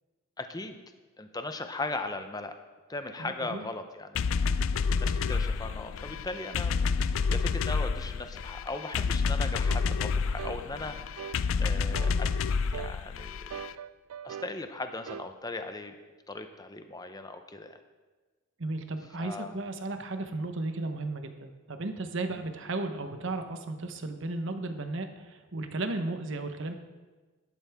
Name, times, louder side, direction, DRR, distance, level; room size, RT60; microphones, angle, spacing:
voice 1, 0.4-0.8 1.2-2.5 2.9-4.2 5.0-11.0 11.6-12.3 12.7-13.5 14.2-15.9 16.3-17.8 19.2-19.5, left 2 dB, 15° left, 7 dB, 0.7 m, -38 dB
voice 2, 3.2-3.7 18.6-26.7, right 2 dB, 60° right, 7 dB, 1.0 m, -34 dB
sound 1, 4.2-13.7, left 5 dB, 65° left, 0.4 m, -29 dB
sound 2, 9.7-9.9 10.4-10.6 11.2-11.4 11.9-12.2 12.7-13.0 13.5-14.5 15.1-15.3, right 8 dB, 85° right, 0.4 m, -41 dB
12.5 x 11.0 x 3.6 m, 1.3 s
head